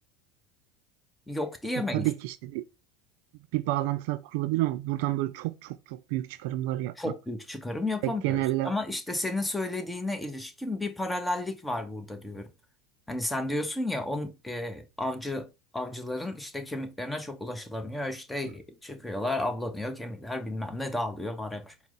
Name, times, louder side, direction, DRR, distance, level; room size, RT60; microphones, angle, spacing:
voice 1, 1.3-2.1 7.0-12.5 13.1-15.5 15.7-21.9, left 1 dB, 10° left, 0.8 m, -33 dB
voice 2, 1.9-2.6 3.5-6.9 8.0-8.7, right 16 dB, 70° right, 0.3 m, -29 dB
4.4 x 2.1 x 3.9 m
hypercardioid pair, 90°, 0 cm